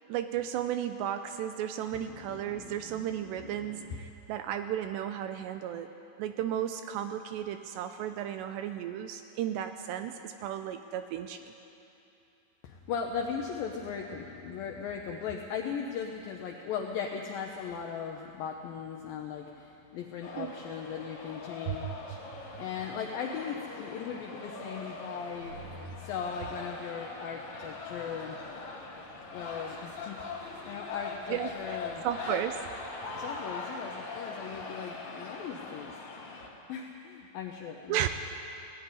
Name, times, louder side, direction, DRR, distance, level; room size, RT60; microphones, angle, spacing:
voice 1, 0.1-5.9 6.2-11.5 20.4-20.5 21.7-22.0 31.3-31.8 32.0-32.6 37.9-38.1, right 10 dB, 80° right, 8 dB, 2.6 m, -34 dB
voice 2, 1.9-4.0 12.6-25.6 26.0-28.4 29.3-32.0 33.1-35.9 36.7-38.1, left 6 dB, 80° left, 1 dB, 2.1 m, -38 dB
sound 1, 20.2-36.5, left 4 dB, 55° left, 3.7 m, -41 dB
sound 2, 25.1-35.6, right 2 dB, 60° right, 2.4 m, -54 dB
19.0 x 14.0 x 9.8 m, 2.8 s
omnidirectional pair, 5.4 m